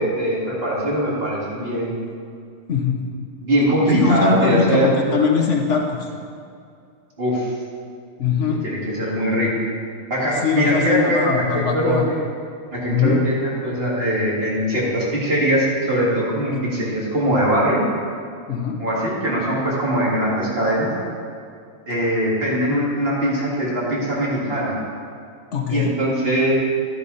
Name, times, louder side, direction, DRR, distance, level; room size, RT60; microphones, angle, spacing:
voice 1, 0.0-2.0 3.4-4.9 7.2-7.5 8.5-9.5 10.1-12.2 12.7-17.8 18.8-20.9 21.9-24.8 25.7-26.5, equal, 45° right, -6 dB, 2.8 m, -21 dB
voice 2, 2.7-3.0 3.9-6.1 8.2-8.6 10.3-12.1 12.9-13.2 16.5-16.6 18.5-18.8 25.5-25.9, left 6 dB, 60° left, 1 dB, 1.3 m, -21 dB
12.5 x 9.7 x 4.2 m, 2.3 s
omnidirectional pair, 1.4 m